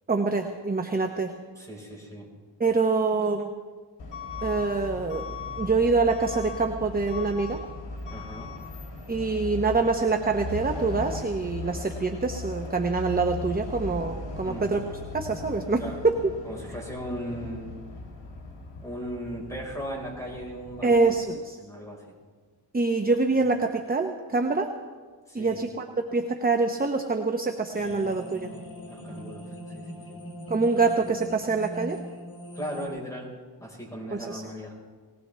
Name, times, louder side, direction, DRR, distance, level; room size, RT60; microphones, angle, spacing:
voice 1, 0.1-1.3 2.6-3.5 4.4-7.6 9.1-14.8 15.1-16.3 20.8-21.6 22.7-24.7 25.3-28.5 30.5-32.0 34.1-34.4, right 3 dB, 20° right, 5 dB, 0.8 m, -25 dB
voice 2, 1.6-2.3 8.1-8.5 14.4-14.7 15.8-16.0 16.4-17.8 18.8-20.9 21.6-22.0 25.3-25.6 28.9-30.2 30.7-30.8 32.5-33.3 33.6-34.8, equal, 5° left, -2 dB, 4.5 m, -37 dB
Truck / Alarm, 4.0-21.2, left 3 dB, 85° left, 2.6 m, -38 dB
sound 1, 27.7-32.9, equal, 55° left, 4.4 m, -41 dB
19.5 x 19.0 x 3.3 m, 1.5 s
wide cardioid pair, 120°, 42 cm